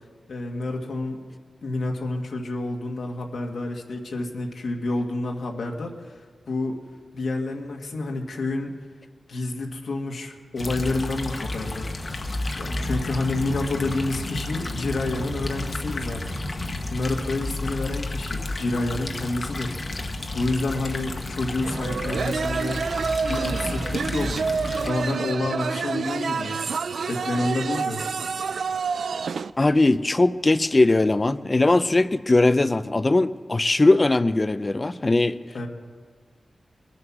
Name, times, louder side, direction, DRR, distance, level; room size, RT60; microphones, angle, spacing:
voice 1, 0.3-1.4 1.6-6.1 6.5-6.8 7.1-8.7 9.3-11.9 12.6-16.4 16.9-19.7 20.3-22.8 23.3-24.5 24.8-26.6 27.1-28.0 35.5-35.7, left 2 dB, 80° left, 1 dB, 1.8 m, -29 dB
sound 1, 10.6-24.9, left 2 dB, 45° left, 1.1 m, -31 dB
sound 2, 21.6-29.5, right 5 dB, 80° right, 0.4 m, -28 dB
voice 2, 29.6-35.4, left 2 dB, 30° left, 13 dB, 0.5 m, -20 dB
21.5 x 7.8 x 6.1 m, 1.5 s
wide cardioid pair, 90°, 0 cm